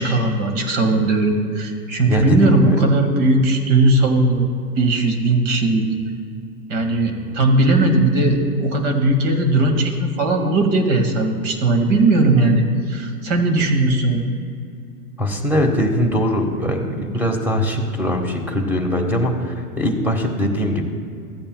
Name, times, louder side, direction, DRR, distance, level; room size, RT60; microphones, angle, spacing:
voice 1, 0.0-4.5 4.8-5.9 6.7-14.3, right 2 dB, 55° right, 4 dB, 2.0 m, -18 dB
voice 2, 2.1-2.8 15.2-20.9, equal, 5° right, 3 dB, 1.3 m, -21 dB
15.5 x 8.7 x 2.3 m, 2.3 s
hypercardioid pair, 110°, 46 cm